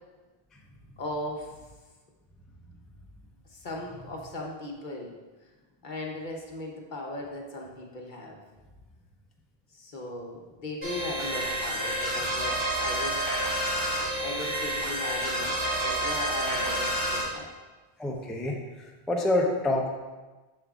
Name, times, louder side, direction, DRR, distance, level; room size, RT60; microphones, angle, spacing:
voice 1, 1.0-1.5 3.6-5.1 5.8-8.4 9.7-13.2 14.2-15.6 15.8-17.5, left 1 dB, 50° left, 0 dB, 1.0 m, -37 dB
sound 1, 10.8-17.2, right 1 dB, 25° right, 1.9 m, -29 dB
voice 2, 18.0-18.5 19.1-19.9, left 2 dB, ahead, -1 dB, 0.5 m, -26 dB
7.3 x 6.7 x 2.4 m, 1.2 s
omnidirectional pair, 1.0 m